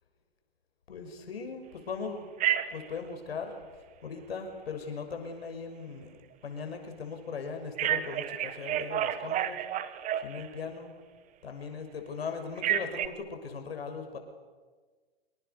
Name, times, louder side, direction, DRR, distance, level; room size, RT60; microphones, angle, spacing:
voice 1, 0.9-2.3 2.7-9.6 10.2-10.9 11.4-14.2, left 5 dB, 75° left, 6 dB, 6.0 m, -39 dB
Telephone, 2.4-2.9 7.8-10.7 12.6-13.1, right 11 dB, 25° right, 1.4 m, -30 dB
27.0 x 26.0 x 6.8 m, 1.4 s
hypercardioid pair, 120°, 30 cm